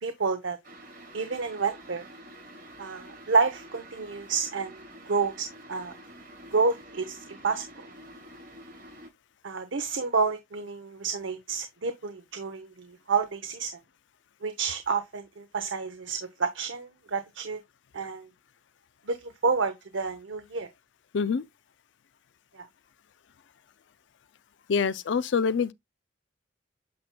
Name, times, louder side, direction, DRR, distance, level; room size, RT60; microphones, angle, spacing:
voice 1, 0.0-0.6 1.1-2.1 2.8-5.9 6.5-7.6 9.4-13.7 14.4-17.6 17.9-18.3 19.1-20.7 22.5-22.7, right 4 dB, 85° right, 0.8 m, -29 dB
sound 1, 0.6-9.1, right 1 dB, 50° right, 4.6 m, -48 dB
voice 2, 21.1-21.5 24.7-25.7, left 5 dB, 70° left, 0.4 m, -25 dB
8.5 x 5.9 x 2.2 m
head